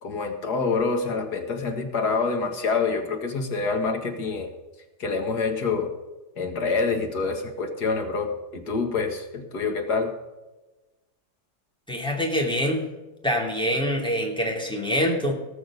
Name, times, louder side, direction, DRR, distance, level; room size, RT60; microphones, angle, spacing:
voice 1, 0.0-4.5 5.0-5.9 6.4-10.1, left 4 dB, 80° left, 4 dB, 2.4 m, -26 dB
voice 2, 11.9-12.8 13.2-15.3, equal, 5° left, 0 dB, 2.7 m, -25 dB
18.5 x 6.5 x 6.5 m, 1.1 s
omnidirectional pair, 1.7 m